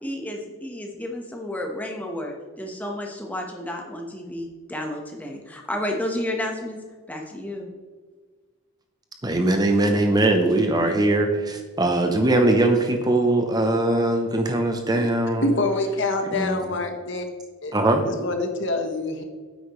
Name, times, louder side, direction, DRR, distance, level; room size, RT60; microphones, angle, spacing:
voice 1, 0.0-6.8 7.1-7.7, left 1 dB, 5° left, 1 dB, 1.1 m, -31 dB
voice 2, 9.2-15.5 16.3-16.6 17.7-18.0, right 2 dB, 20° right, 5 dB, 0.7 m, -21 dB
voice 3, 15.4-17.2 17.6-17.7 18.0-19.2, left 2 dB, 55° left, 5 dB, 1.2 m, -25 dB
9.9 x 8.2 x 3.1 m, 1.5 s
head